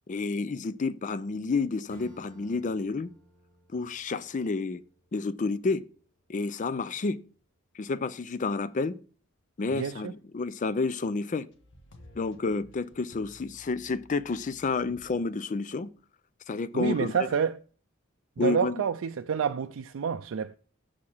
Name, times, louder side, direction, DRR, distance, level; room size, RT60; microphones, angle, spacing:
voice 1, 0.1-3.1 3.7-4.8 5.1-5.8 6.3-7.2 7.8-9.0 9.6-11.5 12.2-15.9 16.5-17.3 18.4-18.7, left 3 dB, 40° left, 0.4 m, -30 dB
Acoustic guitar / Strum, 1.9-7.1, equal, 5° left, 2.6 m, -58 dB
voice 2, 9.8-10.1 16.7-17.6 18.4-20.6, right 7 dB, 75° right, 0.4 m, -28 dB
sound 1, 11.5-15.2 15.8-15.9, left 1 dB, 65° left, 1.4 m, -55 dB
7.3 x 4.8 x 7.0 m
head